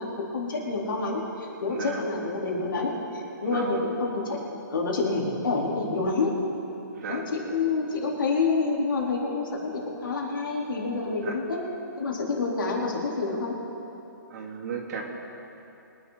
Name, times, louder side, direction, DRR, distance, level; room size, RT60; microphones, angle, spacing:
voice 1, 0.0-4.4 4.7-6.3 7.1-11.6 12.0-13.5, left 3 dB, 80° left, -3 dB, 3.9 m, -28 dB
voice 2, 1.7-2.0 3.4-3.9 6.9-7.3 11.2-11.4 14.3-15.0, right 5 dB, 55° right, 0 dB, 2.8 m, -34 dB
24.0 x 10.0 x 4.1 m, 2.9 s
hypercardioid pair, 150°, 11 cm